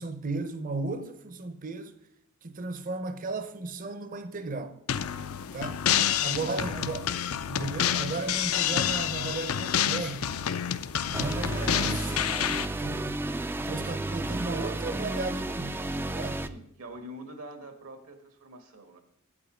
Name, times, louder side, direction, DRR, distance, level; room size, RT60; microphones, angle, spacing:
voice 1, 0.0-2.0 2.4-4.8 5.5-5.8 6.2-7.1 7.5-10.3 11.1-12.2 12.8-13.2 13.5-15.9 16.1-16.5, right 3 dB, 40° right, 0.7 m, -35 dB
sound 1, 4.9-12.7, left 9 dB, 70° left, 0.5 m, -28 dB
voice 2, 5.9-6.7 7.9-8.4 16.4-19.0, right 1 dB, 75° right, 1.5 m, -45 dB
sound 2, 11.1-16.5, right 2 dB, 10° right, 0.3 m, -32 dB
8.4 x 8.3 x 5.0 m
head